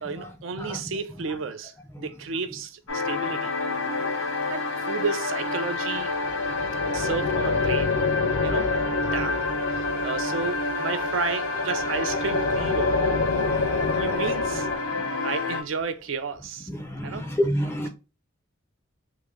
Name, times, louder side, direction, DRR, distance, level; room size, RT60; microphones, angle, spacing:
voice 1, 0.0-3.5 4.5-6.1 6.9-7.9 8.4-8.7 9.1-9.4 9.7-12.9 13.9-14.7 15.2-16.7 17.0-17.3, right 5 dB, 70° right, 0.4 m, -32 dB
sound 1, 2.9-15.6, left 3 dB, 90° left, 1.1 m, -28 dB
sound 2, 5.9-14.8, left 4 dB, 65° left, 0.5 m, -29 dB
voice 2, 16.7-17.9, equal, 10° left, 0.4 m, -28 dB
3.6 x 2.6 x 3.0 m
head